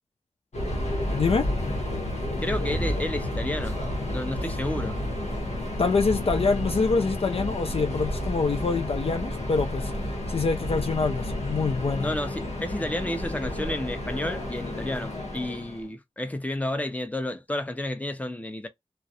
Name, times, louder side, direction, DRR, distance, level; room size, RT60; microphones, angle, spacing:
Subway metro underground, 0.5-15.9, left 1 dB, 75° left, 0.8 m, -31 dB
voice 1, 1.1-1.5 5.8-9.9 10.3-12.1, left 4 dB, 60° left, 0.4 m, -25 dB
voice 2, 2.4-3.8 4.1-5.0 12.0-18.7, left 1 dB, 15° left, 0.7 m, -31 dB
2.3 x 2.0 x 2.7 m
cardioid pair, 40°, 11 cm